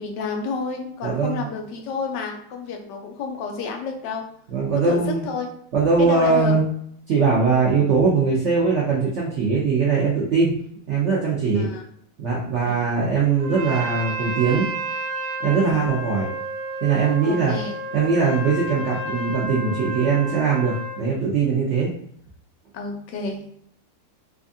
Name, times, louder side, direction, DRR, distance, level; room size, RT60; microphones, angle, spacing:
voice 1, 0.0-4.2 4.8-5.5 6.0-6.5 11.5-11.8 12.6-12.8 15.6-15.9 17.2-17.7 22.7-23.4, left 4 dB, 75° left, 2 dB, 1.1 m, -30 dB
voice 2, 1.0-1.4 4.5-5.2 5.7-6.6 7.1-10.5 10.9-11.7 12.2-14.7 15.4-16.3 16.8-17.5 17.9-21.9, right 5 dB, 85° right, -4 dB, 0.6 m, -21 dB
Trumpet, 13.4-21.0, right 1 dB, 65° right, 1.4 m, -31 dB
4.3 x 2.4 x 2.6 m, 0.67 s
omnidirectional pair, 2.0 m